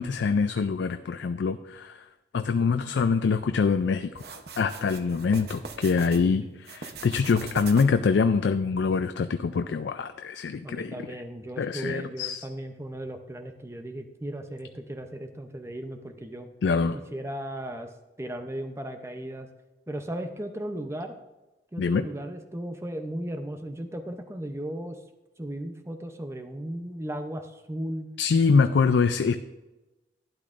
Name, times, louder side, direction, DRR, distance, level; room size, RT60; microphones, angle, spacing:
voice 1, 0.0-2.0 2.3-4.2 4.6-10.9 11.6-12.4 16.6-17.0 21.8-22.1 28.2-29.4, left 5 dB, 80° left, 10 dB, 0.4 m, -24 dB
sound 1, 4.1-6.2 6.6-8.1, right 4 dB, 60° right, 0.8 m, -41 dB
voice 2, 10.6-16.5 16.9-17.9 18.2-19.5 19.9-21.2 21.7-25.0 25.4-28.1, right 1 dB, 15° right, 6 dB, 0.6 m, -36 dB
12.0 x 10.0 x 2.5 m, 1.0 s
head